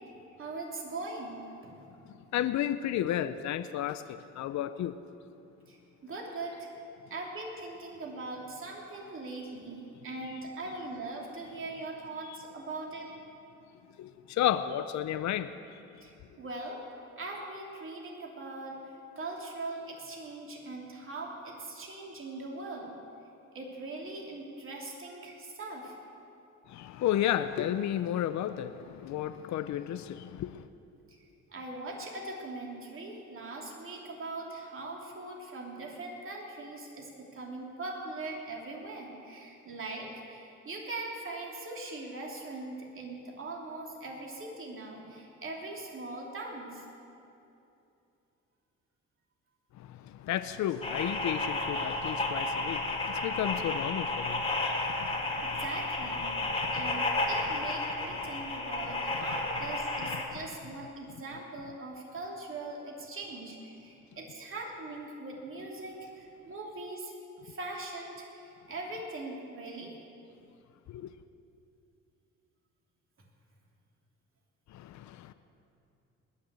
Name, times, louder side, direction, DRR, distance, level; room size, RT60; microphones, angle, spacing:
voice 1, 0.4-1.4 5.7-5.8 6.0-6.7 7.1-13.1 16.0-16.8 17.2-22.9 23.5-26.0 31.1-31.2 31.5-46.8 55.4-56.3 56.7-67.1 67.4-69.9, right 2 dB, 45° right, -1 dB, 3.1 m, -41 dB
voice 2, 2.3-4.9 12.2-12.4 14.0-15.5 26.7-30.6 49.8-55.6 56.3-56.9 58.4-58.5 70.9-71.1 74.7-75.3, left 11 dB, 70° left, 12 dB, 0.6 m, -33 dB
sound 1, 50.8-60.2, left 2 dB, 20° left, 2.1 m, -32 dB
20.0 x 6.7 x 8.2 m, 2.8 s
cardioid pair, 90°, 30 cm